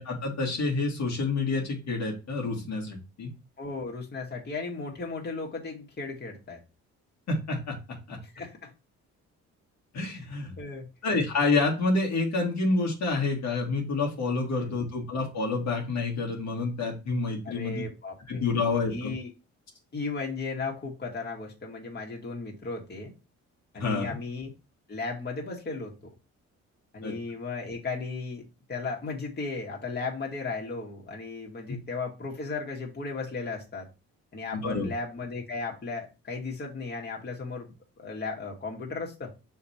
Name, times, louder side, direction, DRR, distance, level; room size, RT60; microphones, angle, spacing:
voice 1, 0.0-3.3 7.3-7.8 8.1-8.2 9.9-10.6 11.0-17.8 18.3-19.1 23.8-24.2 27.0-27.1 31.7-31.8 34.6-34.9, left 3 dB, 65° left, -1 dB, 2.1 m, -28 dB
voice 2, 3.6-6.6 8.2-8.7 10.1-10.2 10.6-10.9 14.5-14.8 17.4-18.6 18.8-19.3 19.9-23.1 23.7-24.5 24.9-25.9 26.9-28.4 28.7-33.9 34.3-37.7 38.0-39.3, left 4 dB, 35° left, -2 dB, 2.2 m, -35 dB
6.4 x 3.4 x 4.3 m, 0.29 s
cardioid pair, 90°, 30 cm